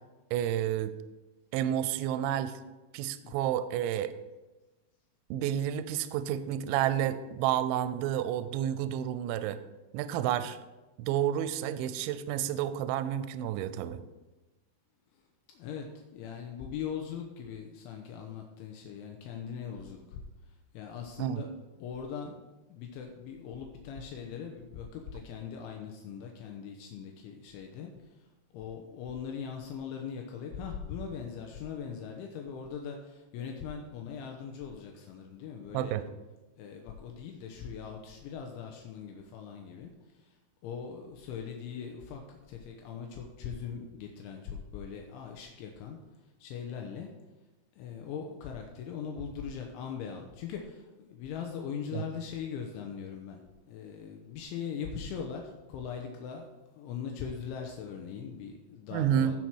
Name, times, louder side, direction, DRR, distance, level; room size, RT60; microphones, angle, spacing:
voice 1, 0.3-0.9 1.5-2.6 2.9-4.1 5.3-9.6 9.9-10.6 11.0-14.0 21.2-21.4 35.7-36.0 51.9-52.0 58.9-59.4, right 10 dB, 80° right, 13 dB, 2.9 m, -30 dB
voice 2, 15.5-15.9 16.1-20.2 20.7-21.5 21.8-22.3 22.7-27.9 28.5-36.0 36.6-39.9 40.6-46.0 46.4-47.1 47.8-53.4 53.7-56.4 56.8-59.4, left 7 dB, 80° left, 2 dB, 3.2 m, -40 dB
15.5 x 5.8 x 4.7 m, 1.1 s
omnidirectional pair, 5.6 m